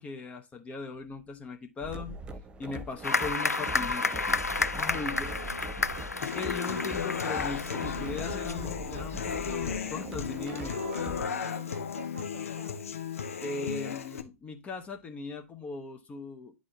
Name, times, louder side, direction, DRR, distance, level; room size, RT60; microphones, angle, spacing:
voice 1, 0.0-2.2 2.6-4.3 4.7-5.4 6.2-10.8 13.4-16.5, left 4 dB, 15° left, 0.8 m, -39 dB
sound 1, 1.8-11.2, right 2 dB, 10° right, 0.3 m, -42 dB
sound 2, 3.0-8.5, left 3 dB, 90° left, 0.4 m, -31 dB
voice 2, 4.9-5.6 10.5-12.9, right 6 dB, 65° right, 0.8 m, -48 dB
Human voice / Acoustic guitar, 6.2-14.2, left 7 dB, 65° left, 0.7 m, -35 dB
9.7 x 4.2 x 2.9 m
figure-of-eight pair, 110°, 8 cm